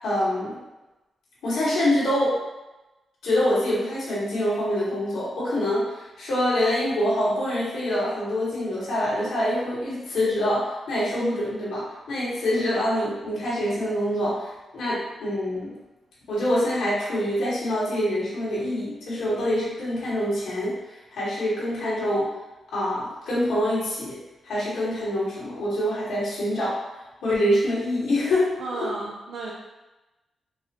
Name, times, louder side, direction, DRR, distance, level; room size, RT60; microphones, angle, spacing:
voice 1, 0.0-0.6 1.4-2.4 3.2-14.5 14.7-15.7 16.3-20.7 21.1-22.3 22.7-24.2 24.4-26.8 27.2-28.5, left 1 dB, 90° left, -8 dB, 1.5 m, -25 dB
voice 2, 28.6-29.5, right 3 dB, 75° right, -3 dB, 0.5 m, -33 dB
4.6 x 2.1 x 2.9 m, 1.0 s
cardioid pair, 95°, 0 cm